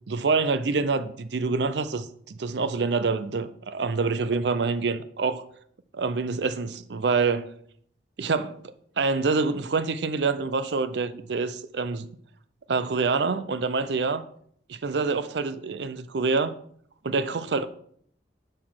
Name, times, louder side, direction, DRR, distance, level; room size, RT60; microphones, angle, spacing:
voice 1, 0.1-5.4 5.9-7.5 8.2-8.6 9.0-12.1 12.7-14.2 14.7-16.6 17.0-17.7, right 4 dB, 75° right, 0.6 m, -26 dB
6.6 x 5.9 x 6.2 m
head